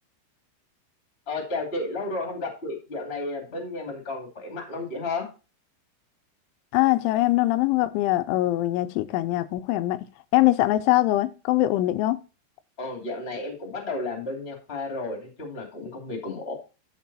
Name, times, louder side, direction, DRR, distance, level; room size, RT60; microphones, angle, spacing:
voice 1, 1.3-5.3 12.8-16.5, left 2 dB, 25° left, 1.4 m, -32 dB
voice 2, 6.7-10.0 10.3-12.2, left 16 dB, 85° left, 3.0 m, -22 dB
12.0 x 4.7 x 4.1 m
omnidirectional pair, 5.5 m